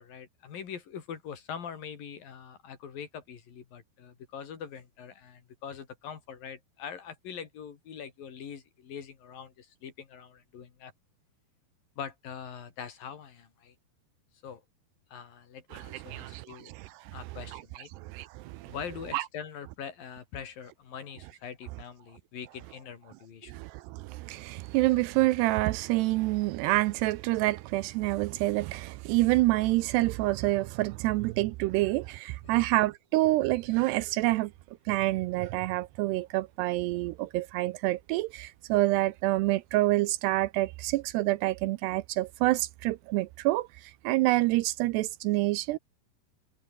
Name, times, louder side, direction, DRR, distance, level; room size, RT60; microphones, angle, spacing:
voice 1, 0.0-10.9 12.0-13.8 14.4-14.6 15.1-16.7 17.1-17.9 18.7-23.6 32.4-32.7, left 7 dB, 55° left, 4.3 m, -43 dB
voice 2, 15.7-16.9 17.5-17.6 18.0-18.7 19.1-19.2 23.5-34.5 34.9-45.8, right 19 dB, 80° right, 2.6 m, -27 dB
omnidirectional pair, 5.1 m